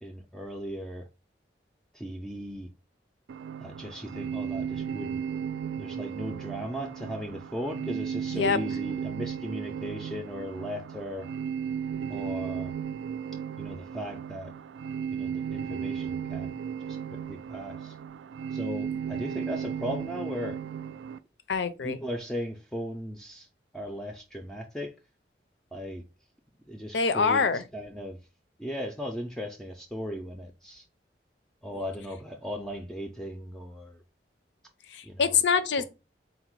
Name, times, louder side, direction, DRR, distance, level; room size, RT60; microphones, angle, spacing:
voice 1, 0.0-1.1 1.9-2.7 3.6-5.2 5.8-11.3 12.1-12.7 13.6-14.5 15.1-16.5 16.9-17.0 17.3-17.9 18.5-20.6 21.8-23.5 23.7-24.9 25.7-26.0 26.7-28.2 28.6-30.9 31.6-34.0 35.0-35.4 35.8-35.9, equal, 5° left, 0.3 m, -37 dB
sound 1, 3.3-21.2, right 7 dB, 85° right, 0.3 m, -35 dB
voice 2, 21.5-22.0 26.9-27.6 34.9-35.8, left 5 dB, 80° left, 0.5 m, -25 dB
3.9 x 2.1 x 4.5 m
head